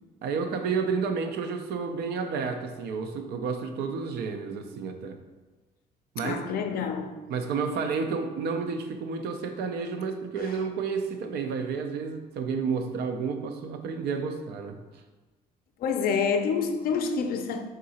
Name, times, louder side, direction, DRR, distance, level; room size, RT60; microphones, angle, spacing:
voice 1, 0.2-5.2 6.1-6.4 7.3-14.8, right 5 dB, 75° right, 0.5 m, -31 dB
voice 2, 6.2-7.2 15.8-17.6, left 6 dB, 60° left, 0.5 m, -27 dB
3.7 x 2.8 x 4.1 m
cardioid pair, 110°, 17 cm